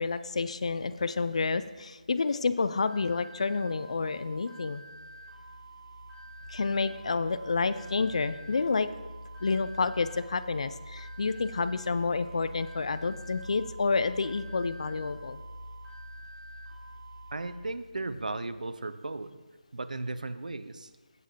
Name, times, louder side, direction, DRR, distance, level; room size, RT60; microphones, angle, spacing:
voice 1, 0.0-4.8 6.5-8.9 9.4-15.4, left 4 dB, 45° left, 13 dB, 0.4 m, -29 dB
sound 1, 2.8-17.5, right 2 dB, 5° right, 2.4 m, -50 dB
sound 2, 4.6-18.7, equal, 90° left, 1.2 m, -47 dB
voice 2, 17.3-19.4 19.7-20.9, right 2 dB, 60° right, 13 dB, 0.6 m, -36 dB
15.0 x 7.0 x 2.9 m, 1.3 s
figure-of-eight pair, 155°, 5 cm